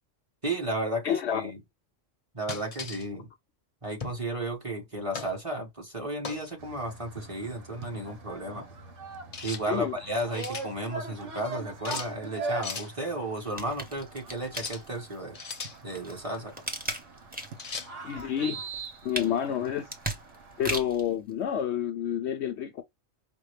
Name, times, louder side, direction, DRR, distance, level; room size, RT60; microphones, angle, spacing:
voice 1, 0.4-1.6 2.3-3.3 3.8-8.6 9.4-15.4 15.8-16.5, right 1 dB, 25° right, 1.6 m, -33 dB
voice 2, 1.0-1.5 9.7-10.0 18.0-18.6 19.0-19.9 20.6-22.8, left 9 dB, 70° left, 0.8 m, -29 dB
sound 1, 2.5-3.1 4.0-4.2 5.1-5.4 6.2-6.5 9.3-9.6 10.1-10.7 11.8-12.1 12.6-12.9 14.5-14.8 15.3-15.8 17.6-17.9, left 5 dB, 35° left, 0.7 m, -38 dB
sound 2, 6.6-20.8, right 3 dB, 75° right, 1.4 m, -42 dB
sound 3, 13.4-15.2 15.7-17.7 18.1-21.1 21.6-21.7, right 1 dB, 10° right, 1.0 m, -37 dB
5.2 x 2.2 x 3.2 m
omnidirectional pair, 1.3 m